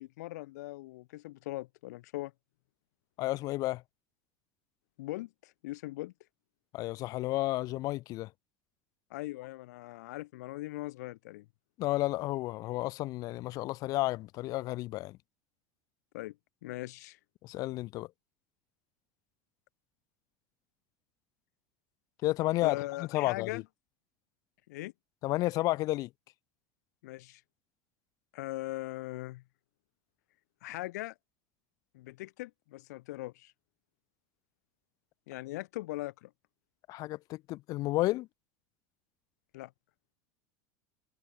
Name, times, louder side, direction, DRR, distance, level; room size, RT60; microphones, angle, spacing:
voice 1, 0.0-2.3 5.0-6.1 9.1-11.5 16.1-16.4 16.6-17.2 22.6-23.6 24.7-24.9 27.0-27.4 28.3-29.4 30.6-31.1 31.9-33.5 35.3-36.3 39.5-39.7, left 18 dB, 85° left, 6.9 m, -40 dB
voice 2, 3.2-3.8 6.7-8.3 11.8-15.2 17.4-18.1 22.2-23.6 25.2-26.1 36.9-38.3, left 18 dB, 45° left, 2.3 m, -32 dB
supercardioid pair, 160°, 9 cm